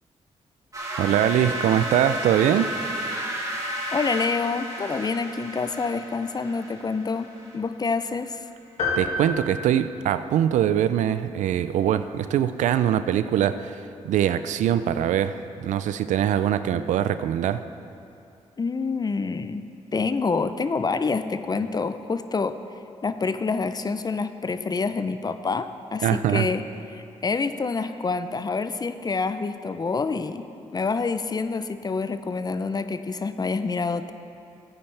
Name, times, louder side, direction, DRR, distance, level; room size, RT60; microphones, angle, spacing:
sound 1, 0.7-7.5, right 1 dB, 25° right, 2.4 m, -32 dB
voice 1, 1.0-2.7 9.0-17.6 26.0-26.5, right 10 dB, 80° right, 12 dB, 0.4 m, -23 dB
voice 2, 3.9-8.4 18.6-22.6 23.0-26.6 26.9-34.1, left 4 dB, 35° left, 11 dB, 0.5 m, -27 dB
sound 2, 8.8-10.6, left 2 dB, 70° left, 2.1 m, -30 dB
14.5 x 9.1 x 3.3 m, 2.6 s
cardioid pair, 65°, 12 cm